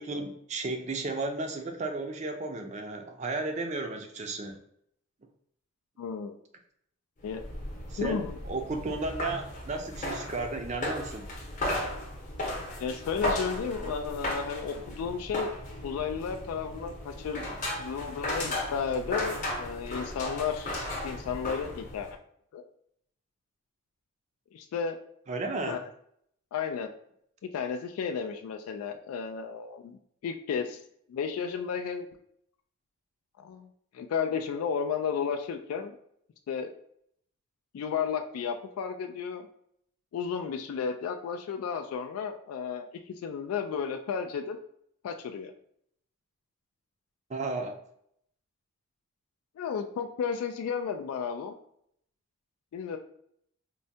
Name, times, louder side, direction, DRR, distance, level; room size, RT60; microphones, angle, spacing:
voice 1, 0.0-4.6 7.9-11.3 25.3-25.8 47.3-47.8, right 3 dB, 30° right, 5 dB, 0.4 m, -34 dB
voice 2, 6.0-6.4 7.2-7.4 8.0-8.4 12.8-15.5 15.8-20.8 21.0-22.2 22.5-22.6 24.5-25.0 25.7-25.8 26.5-26.9 27.4-30.8 31.1-32.1 33.4-33.7 33.9-36.0 36.5-36.7 37.7-39.5 40.1-44.6 45.0-45.5 49.6-51.6 52.7-53.0, left 6 dB, 85° left, 7 dB, 0.3 m, -33 dB
sound 1, 7.2-22.1, left 1 dB, 35° left, 0.8 m, -36 dB
4.5 x 2.1 x 2.6 m, 0.70 s
head